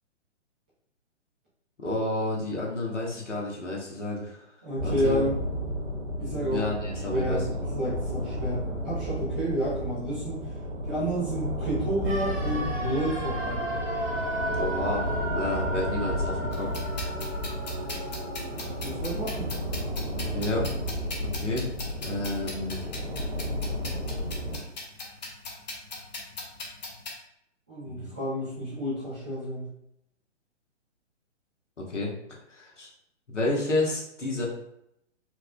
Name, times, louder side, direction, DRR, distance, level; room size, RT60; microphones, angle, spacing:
voice 1, 1.8-4.5 4.8-5.3 6.3-7.6 14.5-16.7 20.3-20.7 21.2-21.7 22.0-22.8 27.9-28.1 31.8-32.1 32.5-32.9 33.3-34.5, left 2 dB, 75° left, -2 dB, 1.2 m, -31 dB
voice 2, 4.6-5.4 6.2-6.6 7.1-7.5 7.8-10.4 10.8-13.7 18.8-19.5 27.7-29.7, right 1 dB, 10° right, -14 dB, 0.4 m, -30 dB
sound 1, 4.8-24.6, equal, 70° right, 1.3 m, -32 dB
sound 2, 12.0-22.0 22.2-22.3, right 1 dB, 25° right, 0.7 m, -35 dB
sound 3, 16.5-27.1, left 3 dB, 35° left, 0.7 m, -40 dB
4.6 x 2.3 x 2.2 m, 0.77 s
figure-of-eight pair, 125°, 36 cm